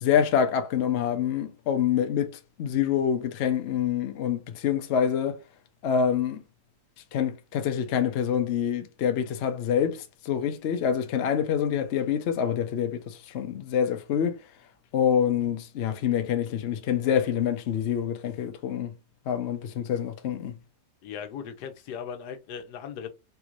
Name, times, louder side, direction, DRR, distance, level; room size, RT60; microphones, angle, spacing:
voice 1, 0.0-5.4 5.8-6.4 7.1-14.4 14.9-18.9 19.3-20.5, left 8 dB, 60° left, 0.7 m, -26 dB
voice 2, 21.0-23.1, left 7 dB, 85° left, 1.2 m, -38 dB
3.5 x 2.4 x 2.9 m
omnidirectional pair, 1.7 m